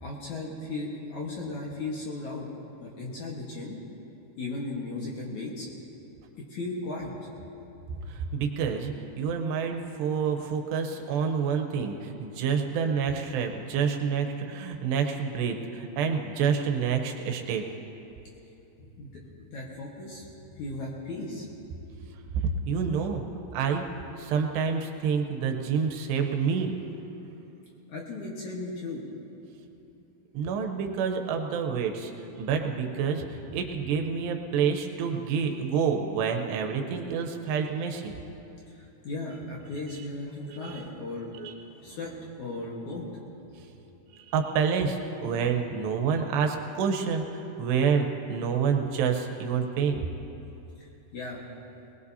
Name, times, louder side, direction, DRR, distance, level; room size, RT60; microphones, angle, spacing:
voice 1, 0.0-2.5 2.8-3.8 4.4-5.7 6.5-7.2 7.9-8.0 18.8-21.5 22.5-22.6 27.9-29.0 38.7-41.3 41.8-43.0 50.8-51.5, left 2 dB, 60° left, -4 dB, 2.2 m, -36 dB
voice 2, 8.1-17.7 22.7-23.2 23.5-23.9 24.2-26.7 30.3-32.1 32.4-38.1 39.9-40.1 40.5-40.8 41.4-41.5 44.1-50.0, right 6 dB, 80° right, 4 dB, 3.1 m, -28 dB
21.5 x 20.0 x 2.8 m, 2.9 s
omnidirectional pair, 4.9 m